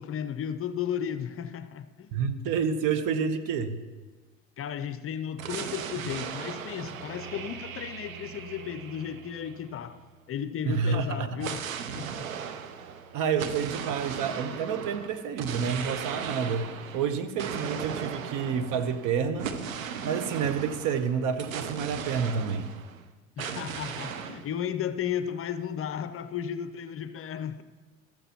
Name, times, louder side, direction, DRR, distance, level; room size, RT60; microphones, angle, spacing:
voice 1, 0.0-2.1 4.6-10.0 10.3-11.7 11.9-12.3 23.4-27.6, left 9 dB, 35° left, 0.7 m, -34 dB
voice 2, 2.1-3.8 10.6-11.3 13.1-16.7 16.9-19.5 20.0-22.7, right 6 dB, 55° right, 1.2 m, -29 dB
sound 1, 5.4-10.1 11.4-23.0 23.4-24.5, right 7 dB, 90° right, 0.9 m, -37 dB
14.5 x 13.5 x 3.0 m
hypercardioid pair, 80°, 39 cm